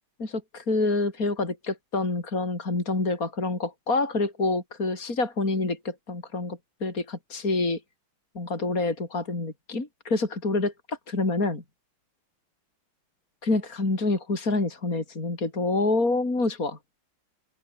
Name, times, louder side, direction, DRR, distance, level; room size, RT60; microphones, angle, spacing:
voice 1, 0.2-7.8 8.3-11.6 13.4-16.8, left 3 dB, 40° left, 5.1 m, -27 dB
open air
omnidirectional pair, 2.3 m